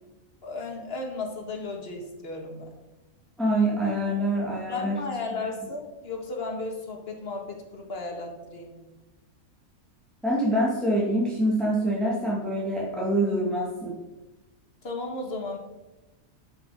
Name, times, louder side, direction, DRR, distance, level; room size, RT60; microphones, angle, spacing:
voice 1, 0.4-2.7 4.7-8.8 14.8-15.6, left 3 dB, 45° left, 2 dB, 1.7 m, -34 dB
voice 2, 3.4-5.0 10.2-14.0, right 1 dB, ahead, -5 dB, 1.9 m, -25 dB
11.0 x 5.5 x 5.0 m, 1.0 s
omnidirectional pair, 1.5 m